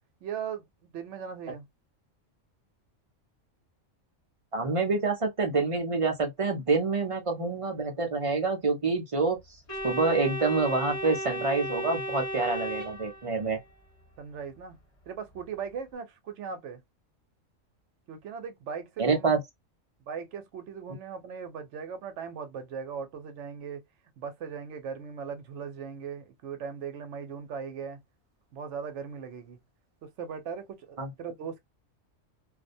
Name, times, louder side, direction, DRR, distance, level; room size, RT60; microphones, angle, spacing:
voice 1, 0.2-1.7 14.2-14.8 15.1-16.8 18.1-19.3 20.0-23.8 24.2-28.0 28.5-29.6 30.0-31.6, right 6 dB, 70° right, 0.9 m, -39 dB
voice 2, 4.5-9.4 9.8-13.6 19.0-19.4 31.0-31.1, right 4 dB, 35° right, 0.5 m, -27 dB
Organ, 9.7-13.6, equal, 35° left, 0.8 m, -35 dB
2.4 x 2.1 x 2.5 m
omnidirectional pair, 1.3 m